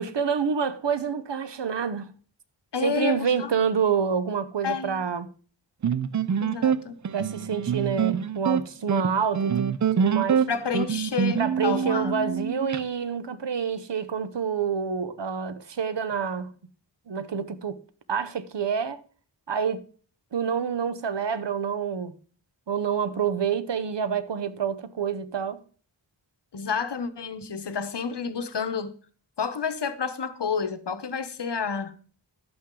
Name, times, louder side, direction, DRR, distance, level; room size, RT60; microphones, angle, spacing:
voice 1, 0.0-2.2 2.8-5.3 7.1-10.5 11.4-16.5 17.1-17.8 18.1-19.0 19.5-19.8 20.3-22.1 22.7-25.6, right 6 dB, 65° right, 0.9 m, -27 dB
voice 2, 2.7-3.5 4.6-5.0 6.4-7.0 10.5-12.1 26.5-28.9 29.4-32.0, left 6 dB, 65° left, 1.0 m, -30 dB
sound 1, 5.8-12.8, right 7 dB, 40° right, 0.4 m, -25 dB
11.5 x 8.6 x 3.8 m
wide cardioid pair, 60°, 45 cm